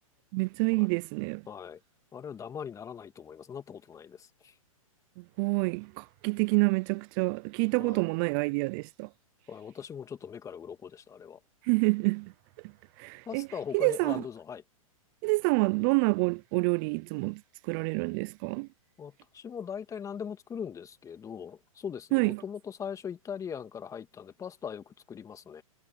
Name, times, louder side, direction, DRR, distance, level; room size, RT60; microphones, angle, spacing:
voice 1, 0.3-1.4 5.2-9.1 11.6-12.3 13.0-13.5 13.7-14.2 15.2-18.7 22.1-22.4, right 29 dB, 40° right, 0.5 m, -28 dB
voice 2, 1.5-1.8 2.1-4.5 7.8-8.1 9.5-11.4 13.3-14.6 19.0-25.6, left 7 dB, 15° left, 2.4 m, -40 dB
hypercardioid pair, 125°, 18 cm